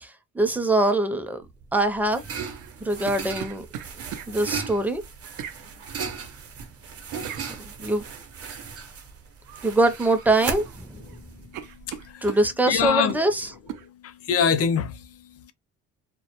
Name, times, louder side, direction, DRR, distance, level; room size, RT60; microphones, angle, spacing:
voice 1, 0.3-1.4 1.7-2.2 2.8-3.7 4.3-5.0 7.8-8.0 9.6-11.0 12.2-13.5, right 2 dB, 5° right, 0.4 m, -23 dB
sound 1, 1.5-12.1, right 6 dB, 50° right, 0.7 m, -36 dB
sound 2, 2.5-4.3 5.4-5.6 7.2-7.5 9.4-9.7 10.1-10.8 11.1-11.2 11.5-13.3 13.7-13.9, right 9 dB, 90° right, 0.5 m, -38 dB
voice 2, 11.1-12.3 12.7-13.2 13.8-15.5, left 7 dB, 55° left, 0.5 m, -26 dB
2.1 x 2.0 x 2.9 m
cardioid pair, 90°, 30 cm